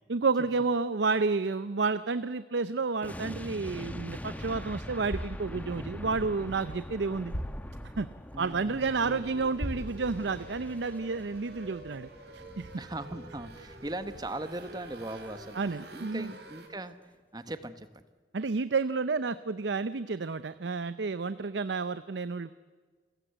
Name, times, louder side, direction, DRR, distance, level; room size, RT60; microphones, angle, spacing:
voice 1, 0.1-7.3 8.0-8.1 8.4-12.7 15.6-16.3 18.3-22.5, right 4 dB, 85° right, 14 dB, 0.6 m, -30 dB
sound 1, 3.0-16.2 16.4-16.6, equal, 10° left, 1.1 m, -44 dB
sound 2, 4.9-10.9, equal, 80° left, 7.9 m, -42 dB
voice 2, 8.3-9.3 12.7-15.6 15.9-18.0, right 1 dB, 25° right, 11 dB, 1.1 m, -39 dB
sound 3, 9.0-16.7, right 2 dB, 70° right, 3.2 m, -49 dB
28.5 x 16.5 x 8.1 m, 1.5 s
head